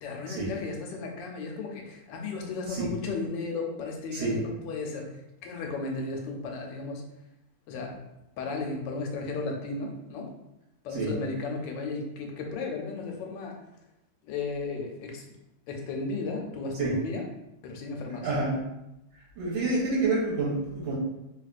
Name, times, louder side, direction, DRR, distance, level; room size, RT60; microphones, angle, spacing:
voice 1, 0.0-7.0 7.7-8.0 8.4-10.3 10.8-13.6 14.2-15.2 15.7-17.3 17.6-18.3, left 3 dB, 75° left, 2 dB, 1.2 m, -34 dB
voice 2, 18.2-18.6 19.1-20.9, right 3 dB, 85° right, -7 dB, 1.7 m, -28 dB
3.4 x 2.7 x 2.4 m, 0.88 s
omnidirectional pair, 2.1 m